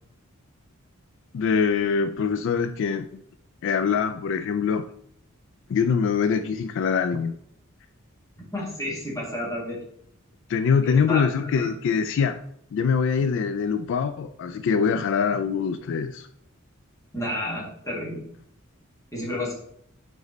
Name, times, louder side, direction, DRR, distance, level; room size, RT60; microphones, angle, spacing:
voice 1, 1.3-3.1 3.6-4.9 5.7-7.3 10.5-12.4 12.7-16.3, left 6 dB, 60° left, 10 dB, 0.3 m, -24 dB
voice 2, 8.5-9.8 10.8-11.7 17.1-18.2 19.1-19.5, left 1 dB, 15° left, -4 dB, 1.9 m, -31 dB
5.2 x 5.1 x 3.9 m, 0.68 s
head